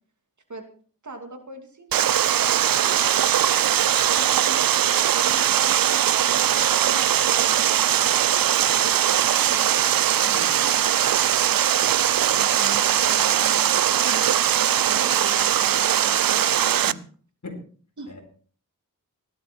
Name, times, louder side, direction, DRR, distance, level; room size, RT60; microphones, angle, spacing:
voice 1, 1.0-5.4 5.7-9.9 11.2-11.3 12.3-14.3 14.9-16.9 18.0-18.1, right 3 dB, 55° right, 5 dB, 2.7 m, -40 dB
Water, 1.9-16.9, right 10 dB, 75° right, 0.5 m, -20 dB
voice 2, 10.2-10.7 17.4-17.6 18.1-18.2, left 3 dB, 55° left, 3 dB, 4.5 m, -39 dB
17.0 x 12.0 x 4.5 m, 0.44 s
wide cardioid pair, 75°, 34 cm